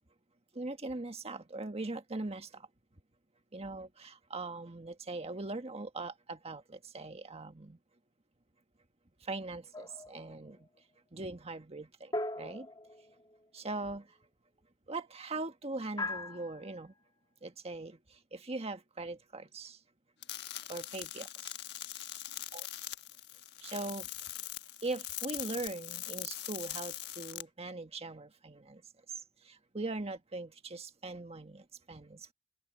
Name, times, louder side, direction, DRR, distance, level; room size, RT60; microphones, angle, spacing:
voice 1, 0.5-2.7 3.5-7.8 9.2-10.7 11.1-12.7 13.5-14.1 14.9-16.9 17.4-19.8 20.7-21.5 22.5-22.7 23.6-24.1 24.8-28.8 29.4-32.3, right 2 dB, 30° right, 1.6 m, -41 dB
sound 1, 9.7-10.3 12.1-13.5 16.0-16.8, left 2 dB, 20° left, 1.5 m, -39 dB
sound 2, 20.2-27.4, left 13 dB, 60° left, 1.3 m, -42 dB
head